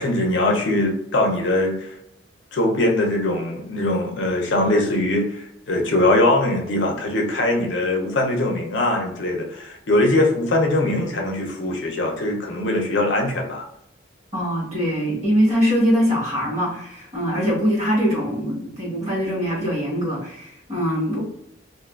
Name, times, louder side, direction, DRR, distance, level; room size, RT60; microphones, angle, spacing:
voice 1, 0.0-1.9 2.5-13.6, left 1 dB, 75° left, 1 dB, 0.6 m, -21 dB
voice 2, 14.3-21.2, equal, 35° right, -7 dB, 1.3 m, -22 dB
2.5 x 2.3 x 2.4 m, 0.78 s
head